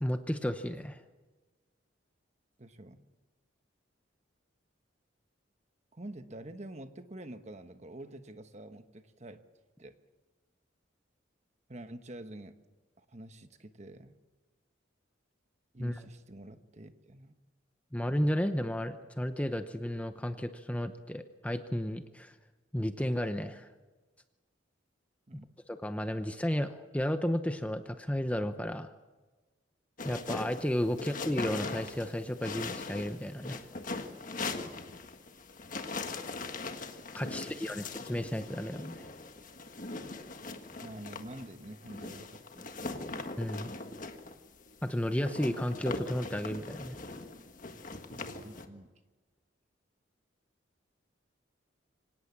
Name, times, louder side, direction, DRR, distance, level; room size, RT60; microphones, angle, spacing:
voice 1, 0.0-1.0 15.8-16.0 17.9-22.3 22.7-23.7 25.7-28.9 30.0-33.7 37.1-39.1 43.4-43.7 44.8-47.0, equal, 5° left, 8 dB, 0.8 m, -33 dB
voice 2, 2.6-3.0 5.9-9.4 9.8-9.9 11.7-12.5 13.0-14.1 15.7-17.3 25.3-25.5 30.9-31.0 37.2-37.9 40.8-43.1 48.1-48.9, right 1 dB, 35° right, 9 dB, 1.2 m, -47 dB
sound 1, 30.0-48.7, left 3 dB, 40° left, 1.5 m, -41 dB
25.0 x 18.0 x 7.4 m, 1.2 s
head